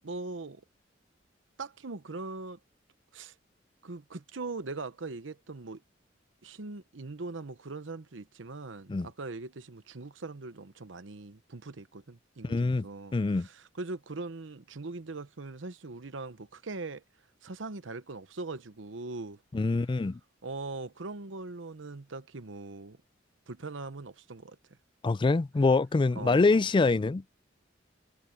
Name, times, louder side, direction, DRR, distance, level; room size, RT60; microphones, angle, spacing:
voice 1, 0.0-0.6 1.6-2.6 3.1-3.4 3.8-5.8 6.4-17.0 17.4-19.4 20.4-23.0 23.5-24.6 26.1-26.7, right 3 dB, 85° right, 0.9 m, -41 dB
voice 2, 12.4-12.9 13.1-13.5 19.5-20.2 25.0-27.2, left 3 dB, 25° left, 0.3 m, -25 dB
head